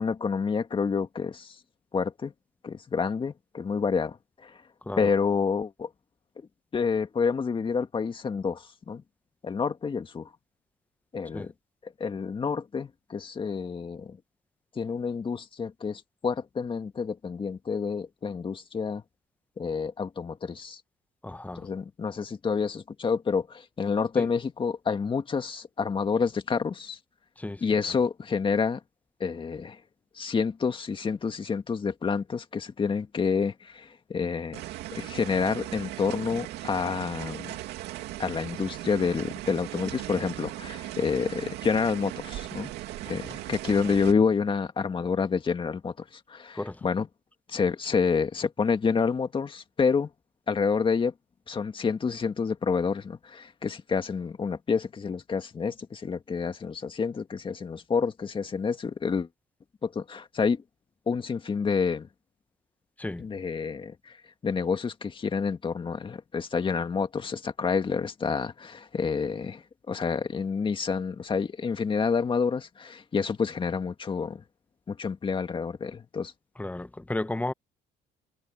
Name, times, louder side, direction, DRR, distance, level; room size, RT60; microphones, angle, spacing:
voice 1, 0.0-1.6 1.9-2.3 2.6-4.2 4.4-4.6 5.0-5.9 6.7-9.0 9.4-10.3 11.1-11.5 12.0-14.2 14.8-19.0 19.6-20.8 21.6-27.0 27.6-28.8 29.2-29.8 30.2-34.6 35.0-37.5 38.2-42.7 43.1-47.1 47.5-50.1 50.5-51.1 51.5-59.3 59.8-60.6 61.1-62.1 63.2-64.2 64.4-74.4 74.9-76.3, left 5 dB, 30° left, 2.0 m, -28 dB
voice 2, 21.2-21.7 24.2-24.3 27.4-27.6 43.1-43.4 46.5-46.8 63.0-63.2 76.6-77.5, left 2 dB, 10° left, 1.0 m, -33 dB
sound 1, 34.5-44.1, right 15 dB, 85° right, 2.4 m, -38 dB
cardioid pair, 110°, 17 cm